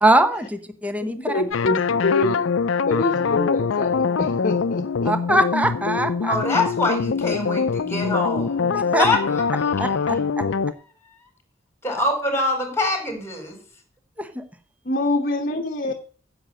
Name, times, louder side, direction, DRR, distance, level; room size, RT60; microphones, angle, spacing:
voice 1, 0.0-1.4 5.0-6.3 8.7-9.1 9.8-10.2 14.2-14.4 15.9-16.0, right 1 dB, 10° right, 9 dB, 0.9 m, -22 dB
voice 2, 1.0-2.4 2.8-5.1 14.8-15.9, left 2 dB, 50° left, 5 dB, 1.0 m, -25 dB
sound 1, 1.5-10.7, left 5 dB, 80° left, 0.5 m, -23 dB
voice 3, 6.2-8.7 9.0-9.7 11.8-13.6, left 2 dB, 15° left, 3 dB, 4.8 m, -24 dB
10.0 x 7.9 x 7.6 m, 0.42 s
head